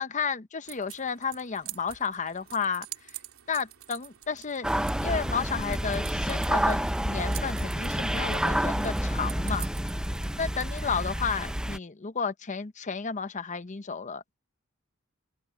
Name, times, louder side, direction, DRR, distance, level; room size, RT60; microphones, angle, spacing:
voice 1, 0.0-2.9 3.5-4.7 5.0-9.7 10.4-14.4, left 5 dB, 35° left, 0.8 m, -32 dB
sound 1, 0.7-10.9, right 11 dB, 80° right, 3.2 m, -46 dB
sound 2, 4.6-11.8, equal, 5° right, 0.7 m, -29 dB
open air
head